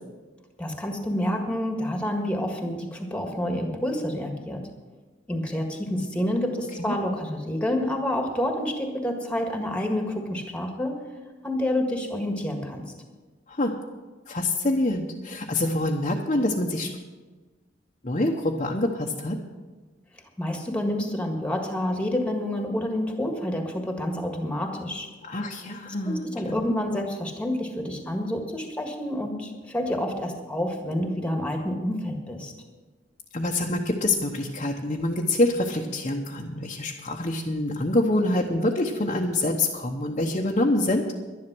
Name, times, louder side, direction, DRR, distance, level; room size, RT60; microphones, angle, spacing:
voice 1, 0.6-4.7 5.3-11.0 11.4-12.8 20.4-25.1 26.0-32.5, left 1 dB, 5° left, 3 dB, 1.7 m, -28 dB
voice 2, 14.3-16.9 18.0-19.4 25.2-26.5 33.3-41.0, left 1 dB, 40° left, -1 dB, 1.0 m, -26 dB
11.5 x 11.0 x 6.1 m, 1.3 s
head